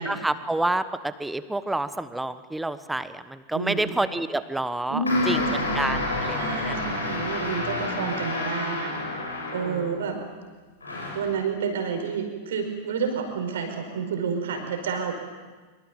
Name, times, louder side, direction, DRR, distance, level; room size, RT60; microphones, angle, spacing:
voice 1, 0.0-5.4 5.7-6.8 9.6-10.0, right 2 dB, 5° right, 13 dB, 1.3 m, -29 dB
voice 2, 3.5-3.9 4.9-5.9 6.3-9.0 9.5-10.2 11.1-15.2, right 4 dB, 60° right, 5 dB, 5.0 m, -29 dB
sound 1, 5.1-10.1 10.8-11.4, left 2 dB, 80° left, 7.6 m, -30 dB
25.5 x 25.5 x 7.3 m, 1.3 s
figure-of-eight pair, 90°, 0 cm